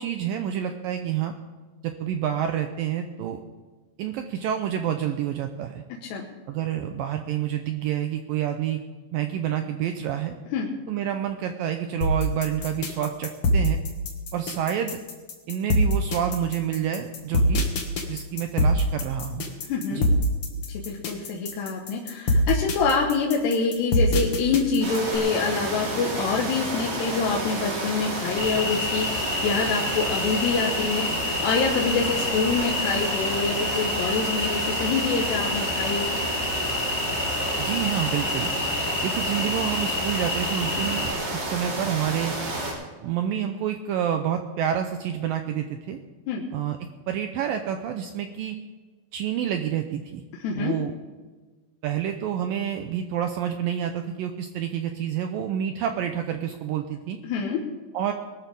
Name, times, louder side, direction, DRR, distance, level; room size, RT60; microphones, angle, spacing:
voice 1, 0.0-1.3 1.8-3.4 4.0-5.8 6.5-8.8 9.1-10.4 10.9-13.8 14.3-15.0 15.5-17.7 18.1-19.5 19.9-20.0 37.6-38.5 39.0-42.4 43.0-46.0 46.5-46.8 47.1-48.6 49.1-50.2 50.5-50.9 51.8-57.2 57.9-58.1, right 9 dB, 80° right, 6 dB, 2.1 m, -28 dB
sound 1, 12.0-25.2, equal, 50° left, 1.7 m, -24 dB
voice 2, 19.6-20.0 20.7-36.1 46.3-46.4 50.4-50.7 57.2-57.6, left 4 dB, 80° left, -1 dB, 3.4 m, -26 dB
sound 2, 24.8-42.7, right 1 dB, 55° right, 5.0 m, -30 dB
sound 3, 28.4-41.1, left 3 dB, 30° left, 1.1 m, -29 dB
21.5 x 12.5 x 3.5 m, 1.3 s
omnidirectional pair, 4.8 m